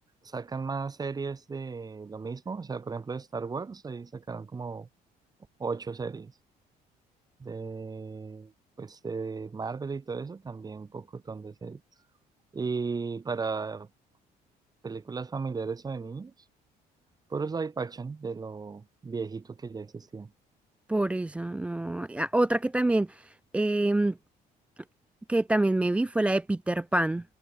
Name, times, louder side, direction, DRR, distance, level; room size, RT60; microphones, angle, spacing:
voice 1, 0.2-4.9 5.6-6.3 7.4-8.5 8.8-11.8 12.5-13.9 14.8-16.3 17.3-20.3, right 4 dB, 25° right, 1.1 m, -35 dB
voice 2, 20.9-24.2 25.3-27.2, right 1 dB, 5° right, 0.3 m, -26 dB
cardioid pair, 110°, 17 cm